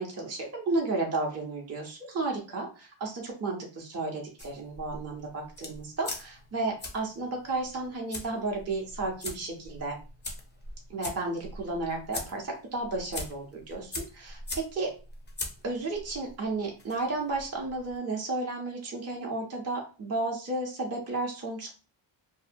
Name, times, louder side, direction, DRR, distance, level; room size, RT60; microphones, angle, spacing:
voice 1, 0.0-10.0 10.9-14.9 15.6-21.7, right 2 dB, 30° right, 0 dB, 0.6 m, -33 dB
sound 1, 4.4-18.0, left 2 dB, 25° left, 0.4 m, -42 dB
2.7 x 2.1 x 2.5 m, 0.34 s
wide cardioid pair, 100°, 48 cm